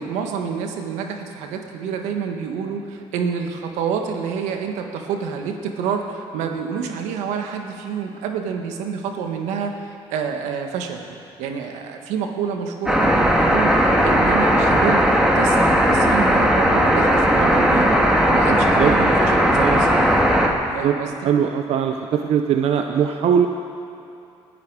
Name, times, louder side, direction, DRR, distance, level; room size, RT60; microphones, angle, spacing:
voice 1, 0.0-11.0 11.4-15.0 15.3-17.9 18.3-20.2 20.7-21.2, right 6 dB, 90° right, 4 dB, 1.4 m, -28 dB
sound 1, 12.9-20.5, equal, 5° right, 2.3 m, -17 dB
voice 2, 19.5-19.9 20.6-21.0 21.2-23.5, right 8 dB, 65° right, 5 dB, 0.8 m, -20 dB
20.0 x 12.0 x 4.8 m, 2.7 s
supercardioid pair, 80°, 12 cm